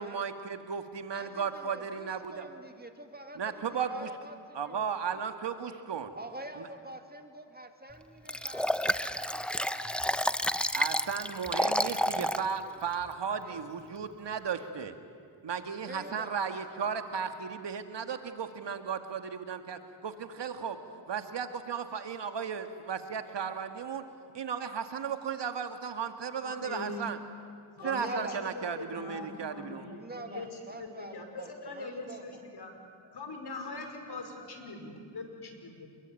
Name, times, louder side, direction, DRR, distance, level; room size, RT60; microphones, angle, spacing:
voice 1, 0.0-2.4 3.4-4.1 4.5-6.1 6.6-6.7 10.7-14.9 15.4-20.8 21.1-24.0 24.3-27.2 27.8-29.9, right 6 dB, 60° right, 8 dB, 2.1 m, -35 dB
voice 2, 1.1-5.2 6.1-10.4 11.5-12.8 13.4-13.6 15.8-17.0 27.8-28.4 29.9-32.4, right 2 dB, 20° right, 6 dB, 2.5 m, -46 dB
Liquid, 8.3-12.5 12.9-13.0, equal, ahead, 0.9 m, -30 dB
voice 3, 26.4-27.1 27.8-32.7 33.0-35.9, left 3 dB, 50° left, 5 dB, 5.5 m, -42 dB
29.0 x 21.5 x 9.2 m, 2.3 s
cardioid pair, 70°, 48 cm